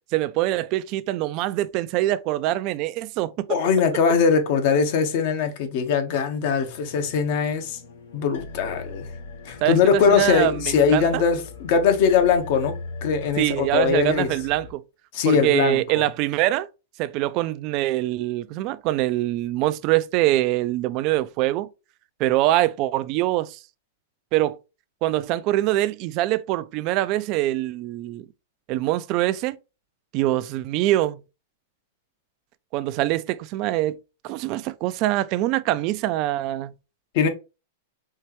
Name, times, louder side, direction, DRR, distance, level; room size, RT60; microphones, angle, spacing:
voice 1, 0.1-3.3 9.6-11.2 13.4-14.8 15.3-16.7 17.0-21.7 22.2-23.6 24.3-24.6 25.0-28.3 28.7-29.6 30.1-31.2 32.7-34.0 34.2-36.7, right 15 dB, 45° right, 0.4 m, -24 dB
voice 2, 3.5-7.8 8.1-9.1 9.4-12.8 13.0-14.3 15.1-16.1 37.1-37.3, left 6 dB, 55° left, 1.2 m, -21 dB
sound 1, 6.3-14.7, left 4 dB, 80° left, 2.4 m, -40 dB
4.5 x 3.2 x 3.1 m
hypercardioid pair, 135°, 0 cm